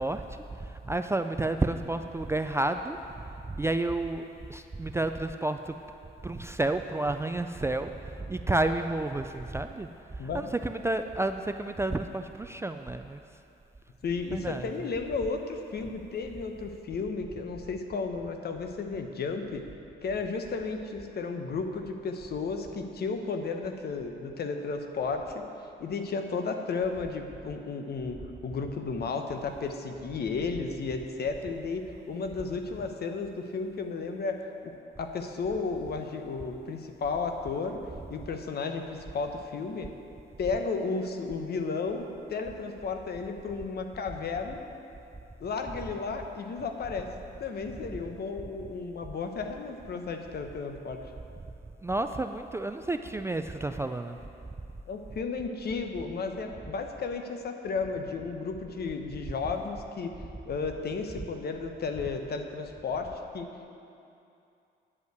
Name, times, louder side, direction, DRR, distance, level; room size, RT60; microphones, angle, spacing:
voice 1, 0.0-3.0 3.5-4.2 4.5-5.7 6.2-7.9 8.2-9.9 10.2-13.2 14.3-14.9 51.8-54.2 59.4-59.5, right 2 dB, 15° right, 7 dB, 0.3 m, -30 dB
voice 2, 14.0-19.6 20.0-25.4 25.8-28.2 28.4-34.4 35.0-37.8 38.1-39.9 40.4-44.6 45.4-47.1 47.4-51.0 54.9-60.1 60.5-63.7, left 4 dB, 55° left, 5 dB, 1.0 m, -33 dB
9.7 x 5.5 x 8.0 m, 2.7 s
cardioid pair, 90°, 20 cm